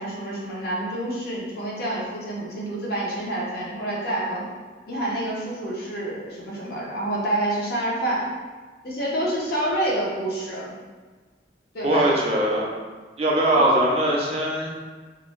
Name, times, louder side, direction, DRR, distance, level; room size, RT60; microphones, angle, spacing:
voice 1, 0.0-4.4 4.9-8.3 8.8-10.7 11.7-12.2 13.5-13.7, right 1 dB, 55° left, -5 dB, 0.6 m, -28 dB
voice 2, 11.8-12.7 13.2-14.7, right 1 dB, 35° right, -3 dB, 0.4 m, -21 dB
2.4 x 2.0 x 3.0 m, 1.4 s
head